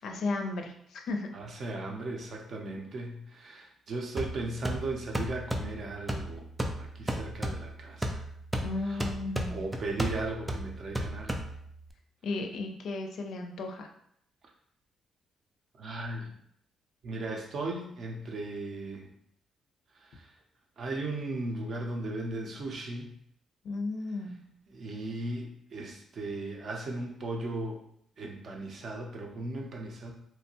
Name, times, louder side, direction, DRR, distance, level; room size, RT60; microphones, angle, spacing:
voice 1, 0.0-1.3 8.6-9.7 12.2-13.9 23.6-24.4, left 3 dB, 70° left, 4 dB, 0.4 m, -34 dB
voice 2, 1.3-6.5 6.8-8.2 8.9-9.0 9.5-11.4 15.8-16.3 17.0-19.1 20.0-20.3 20.8-23.1 24.7-27.8 28.2-30.1, right 2 dB, 55° right, 1 dB, 0.6 m, -37 dB
sound 1, 4.2-11.9, right 1 dB, 10° right, 0.4 m, -35 dB
2.7 x 2.2 x 2.8 m, 0.69 s
cardioid pair, 90°, 0 cm